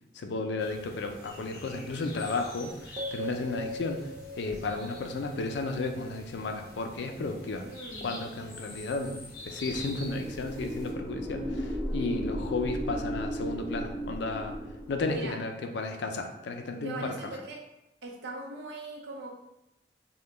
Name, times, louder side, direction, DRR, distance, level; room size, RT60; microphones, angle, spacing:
voice 1, 0.1-4.1 4.4-7.7 8.0-14.6 14.9-17.3, left 3 dB, 80° left, 5 dB, 0.4 m, -33 dB
sound 1, 0.6-10.9, left 1 dB, 50° left, 0.9 m, -46 dB
sound 2, 3.0-7.1, equal, 45° right, 0.4 m, -41 dB
voice 2, 7.6-8.1 15.1-15.4 16.8-17.7 18.0-19.3, right 2 dB, 85° right, 0 dB, 0.7 m, -40 dB
sound 3, 9.2-15.4, equal, 10° left, 0.7 m, -36 dB
3.7 x 2.2 x 3.4 m, 0.90 s
head